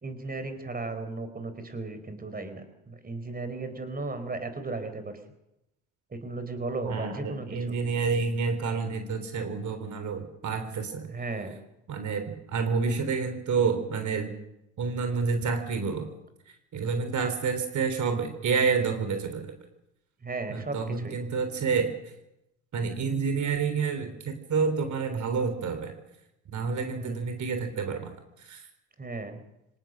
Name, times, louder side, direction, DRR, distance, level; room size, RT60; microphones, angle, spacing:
voice 1, 0.0-5.2 6.1-7.8 11.1-11.6 20.2-21.2 26.9-27.2 29.0-29.4, right 3 dB, 20° right, 9 dB, 4.3 m, -35 dB
voice 2, 6.8-11.1 11.9-14.3 14.8-16.1 16.7-19.5 20.5-21.9 22.7-25.9 26.5-28.7, right 5 dB, 45° right, 8 dB, 3.5 m, -29 dB
25.0 x 18.5 x 6.5 m, 0.88 s
hypercardioid pair, 75°, 41 cm